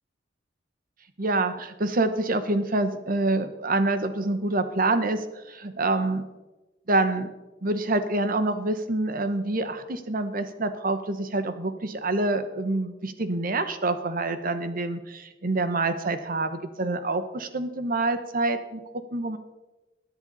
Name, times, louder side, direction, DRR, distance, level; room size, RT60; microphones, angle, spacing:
voice 1, 1.2-6.2 6.9-7.3 7.6-19.4, right 2 dB, 50° right, 10 dB, 1.1 m, -26 dB
21.5 x 8.0 x 4.2 m, 1.1 s
head